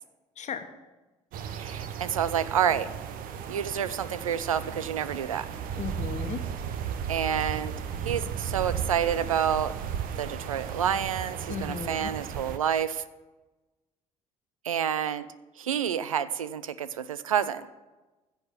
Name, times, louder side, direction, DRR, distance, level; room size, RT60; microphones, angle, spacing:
sound 1, 1.3-12.6, right 8 dB, 55° right, 0.9 m, -35 dB
voice 1, 1.5-2.9 3.5-5.5 7.1-7.7 8.0-9.7 10.2-13.0 14.6-15.2 15.6-17.7, right 9 dB, 85° right, 15 dB, 0.4 m, -28 dB
voice 2, 5.8-6.4 11.5-12.1, left 6 dB, 45° left, 8 dB, 1.2 m, -35 dB
14.5 x 6.9 x 5.9 m, 1.2 s
figure-of-eight pair, 50°, 17 cm